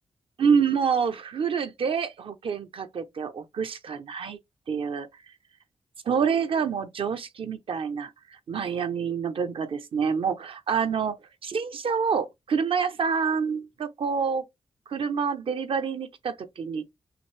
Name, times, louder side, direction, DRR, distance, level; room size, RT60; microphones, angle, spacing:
voice 1, 0.4-4.4 4.7-5.1 6.1-11.2 11.4-14.4 14.9-16.9, right 6 dB, 70° right, 0.8 m, -27 dB
6.1 x 2.7 x 3.3 m
wide cardioid pair, 130°, 10 cm